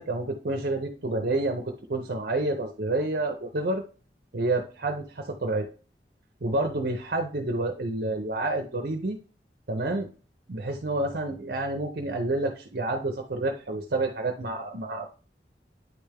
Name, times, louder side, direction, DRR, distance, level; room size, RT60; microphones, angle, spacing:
voice 1, 0.0-3.8 4.3-5.7 6.4-9.2 9.7-10.1 10.5-15.1, right 2 dB, 60° right, 3 dB, 0.7 m, -29 dB
9.3 x 3.4 x 3.4 m, 0.37 s
head